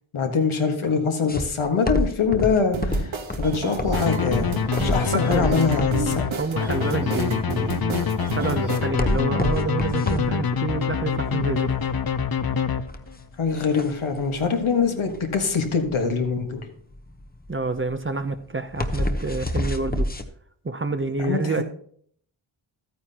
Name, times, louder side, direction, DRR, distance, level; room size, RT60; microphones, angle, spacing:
voice 1, 0.1-3.1 3.4-4.5 4.8-6.4 11.3-11.5 13.4-16.6 21.2-21.6, left 5 dB, 80° left, 4 dB, 1.6 m, -24 dB
sound 1, 1.3-20.2, left 1 dB, 20° left, 0.8 m, -29 dB
sound 2, 2.7-8.8, right 5 dB, 70° right, 1.3 m, -32 dB
sound 3, 3.9-13.3, left 7 dB, 50° left, 0.7 m, -25 dB
voice 2, 4.8-5.6 6.4-8.1 8.3-11.7 17.5-20.1 20.6-21.6, right 3 dB, 25° right, 10 dB, 0.6 m, -28 dB
13.0 x 9.3 x 2.9 m, 0.62 s
wide cardioid pair, 85°, 48 cm